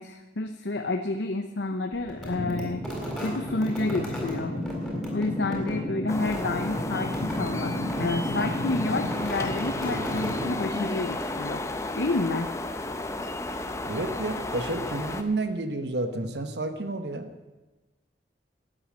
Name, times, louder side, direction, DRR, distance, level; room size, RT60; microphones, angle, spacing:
voice 1, 0.0-2.9 3.2-4.6 5.1-11.7 12.0-12.5, left 2 dB, 75° left, 6 dB, 0.8 m, -30 dB
sound 1, 2.1-11.1, left 1 dB, ahead, 4.1 m, -32 dB
sound 2, 6.1-15.2, left 2 dB, 15° left, 0.8 m, -33 dB
voice 2, 13.8-17.3, right 2 dB, 70° right, 8 dB, 1.3 m, -30 dB
12.5 x 9.0 x 8.8 m, 1.2 s
head